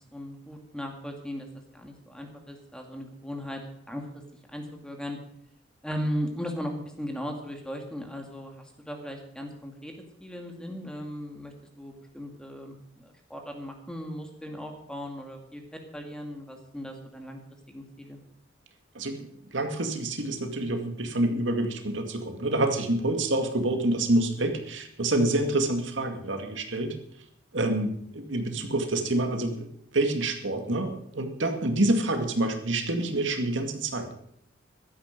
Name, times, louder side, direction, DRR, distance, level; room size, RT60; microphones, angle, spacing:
voice 1, 0.1-1.5 1.7-3.6 3.9-4.0 4.5-5.2 5.8-9.9 10.2-15.6 15.9-17.4 17.7-18.2, equal, 5° left, 3 dB, 2.2 m, -37 dB
voice 2, 18.9-26.9 27.5-29.7 29.9-34.1, right 1 dB, 80° right, 5 dB, 2.1 m, -27 dB
15.0 x 13.0 x 5.2 m, 0.70 s
head